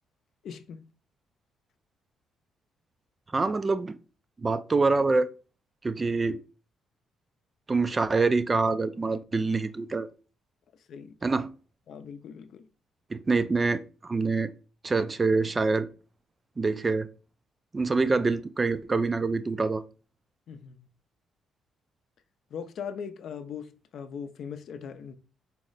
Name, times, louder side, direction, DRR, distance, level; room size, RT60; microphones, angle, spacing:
voice 1, 0.4-0.8 10.9-11.1 11.9-12.6 20.5-20.8 22.5-25.2, left 7 dB, 65° left, 0.4 m, -39 dB
voice 2, 3.3-4.0 4.4-5.3 5.8-6.4 7.7-10.1 11.2-11.5 13.1-14.5 14.8-15.9 16.6-17.1 17.7-19.8, right 3 dB, 30° right, 0.3 m, -25 dB
4.2 x 2.0 x 3.8 m
cardioid pair, 90°, 0 cm